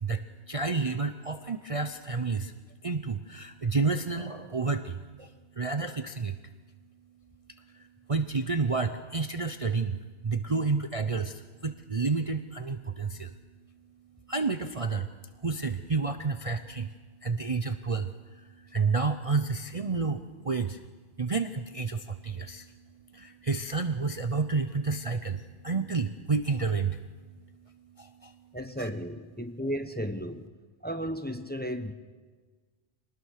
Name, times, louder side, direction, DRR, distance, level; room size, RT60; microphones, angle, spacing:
voice 1, 0.0-2.5 2.8-5.3 5.6-6.4 8.1-10.0 10.2-13.3 14.3-15.1 15.4-16.9 17.2-18.1 18.7-20.8 21.2-22.7 23.1-27.0 28.0-28.3 28.8-28.9, right 4 dB, 35° right, 8 dB, 0.7 m, -30 dB
voice 2, 28.5-30.4 30.8-31.9, equal, 10° left, 8 dB, 0.9 m, -34 dB
25.5 x 19.5 x 6.5 m, 1.4 s
omnidirectional pair, 1.2 m